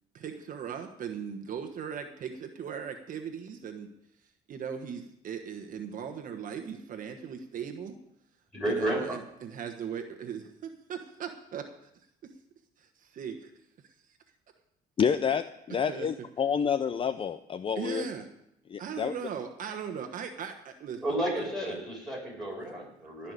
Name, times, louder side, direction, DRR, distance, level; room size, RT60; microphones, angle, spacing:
voice 1, 0.1-3.9 4.5-7.9 8.7-11.6 12.8-13.5 15.9-16.1 17.8-18.3 18.8-21.0 21.4-21.8, right 7 dB, 55° right, 5 dB, 1.2 m, -38 dB
voice 2, 8.5-9.2 21.0-23.3, right 1 dB, ahead, -3 dB, 6.7 m, -32 dB
voice 3, 15.0-18.1 18.7-19.1, left 7 dB, 30° left, 12 dB, 0.5 m, -29 dB
17.5 x 5.8 x 8.1 m, 0.81 s
cardioid pair, 110°, 17 cm